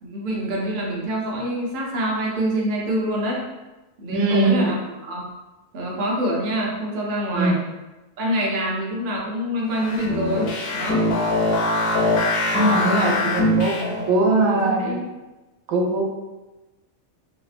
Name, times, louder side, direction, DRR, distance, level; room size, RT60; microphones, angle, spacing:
voice 1, 0.0-3.4 4.0-4.8 5.0-5.3 5.7-7.6 8.2-11.1 12.7-13.3 13.7-14.0 14.3-15.0, right 1 dB, 50° right, -3 dB, 0.6 m, -26 dB
voice 2, 4.1-4.7 7.3-7.6 12.5-15.0 15.7-16.0, right 2 dB, 80° right, -1 dB, 1.0 m, -21 dB
sound 1, 9.7-14.2, left 2 dB, 60° left, 0.6 m, -22 dB
3.1 x 2.8 x 2.4 m, 1.1 s
omnidirectional pair, 1.5 m